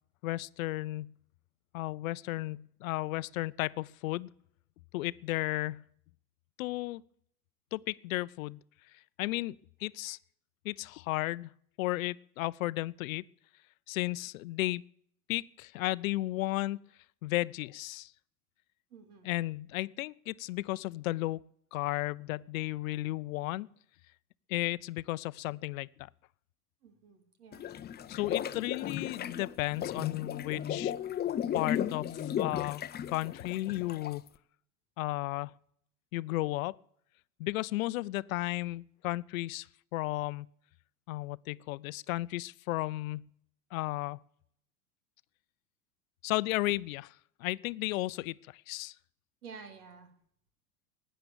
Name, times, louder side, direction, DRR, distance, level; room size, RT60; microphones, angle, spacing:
voice 1, 0.2-1.1 1.7-4.3 4.9-5.8 6.6-7.0 7.7-8.6 9.2-9.6 9.8-10.2 10.6-11.5 11.8-13.2 13.9-14.8 15.3-16.8 17.2-18.1 19.2-21.4 21.7-23.7 24.5-26.1 28.1-30.9 31.5-34.2 35.0-35.5 36.1-36.8 37.4-39.7 39.9-40.5 41.1-43.2 43.7-44.2 46.2-47.1 47.4-48.9, left 18 dB, 65° left, 0.6 m, -34 dB
voice 2, 18.9-19.3 26.8-27.7 28.1-28.4 47.8-47.9 49.4-50.1, right 5 dB, 75° right, 3.1 m, -51 dB
sound 1, 27.5-34.3, left 10 dB, 20° left, 0.7 m, -35 dB
16.5 x 10.0 x 6.9 m
hypercardioid pair, 85°, 45 cm